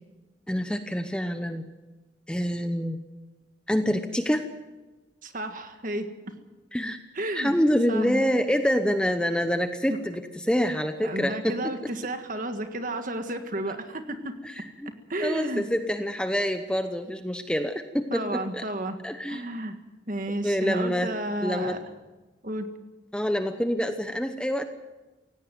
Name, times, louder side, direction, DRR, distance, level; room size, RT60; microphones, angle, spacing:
voice 1, 0.5-1.6 2.3-3.0 3.7-4.4 6.7-7.0 7.3-11.6 14.4-14.9 15.2-18.6 19.0-19.5 20.4-21.1 21.4-21.8 23.1-24.7, equal, 5° left, 8 dB, 0.8 m, -26 dB
voice 2, 5.2-6.1 7.2-7.6 7.9-8.2 9.9-10.0 11.0-14.4 15.1-15.6 18.1-19.0 19.3-19.8 20.1-21.8 22.4-22.7, right 1 dB, 45° right, 7 dB, 1.8 m, -32 dB
17.5 x 16.5 x 9.3 m, 1.2 s
head